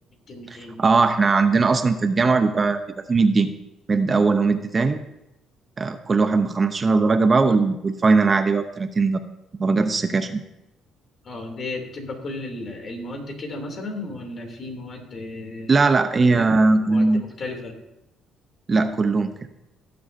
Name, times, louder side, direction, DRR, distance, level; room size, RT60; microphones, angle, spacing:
voice 1, 0.3-0.8 11.2-15.8 16.2-17.8, left 2 dB, 45° left, 2 dB, 2.9 m, -34 dB
voice 2, 0.8-2.8 3.1-3.5 3.9-5.0 5.8-9.2 9.6-10.4 15.7-17.2 18.7-19.3, right 4 dB, 35° right, 9 dB, 0.7 m, -19 dB
18.5 x 7.6 x 2.7 m, 0.90 s
cardioid pair, 85°, 0 cm